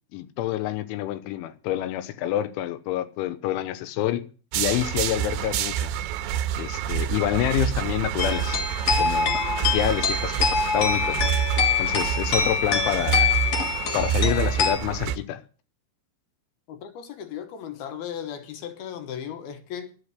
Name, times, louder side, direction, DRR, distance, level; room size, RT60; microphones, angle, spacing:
voice 1, 0.1-4.3 4.6-5.9 6.6-8.6 9.0-11.2 11.8-13.4 13.9-15.4, left 13 dB, 90° left, 3.3 m, -27 dB
sound 1, 4.5-15.2, right 10 dB, 80° right, 3.2 m, -28 dB
sound 2, 8.2-14.7, left 5 dB, 55° left, 2.0 m, -25 dB
voice 2, 16.7-19.9, left 9 dB, 70° left, 2.7 m, -36 dB
11.5 x 8.8 x 8.1 m
omnidirectional pair, 5.4 m